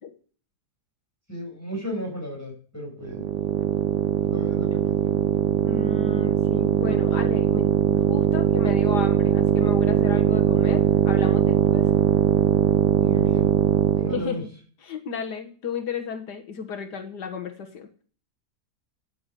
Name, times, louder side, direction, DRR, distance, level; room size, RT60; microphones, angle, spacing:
voice 1, 1.3-3.3 4.2-5.5 13.0-13.5 13.9-14.4, equal, 10° left, -1 dB, 6.3 m, -35 dB
sound 1, 3.0-14.3, right 13 dB, 85° right, 1.4 m, -21 dB
voice 2, 5.6-11.8 14.1-14.5 14.8-18.0, left 6 dB, 80° left, 5 dB, 1.9 m, -33 dB
9.5 x 9.2 x 8.2 m, 0.43 s
omnidirectional pair, 1.7 m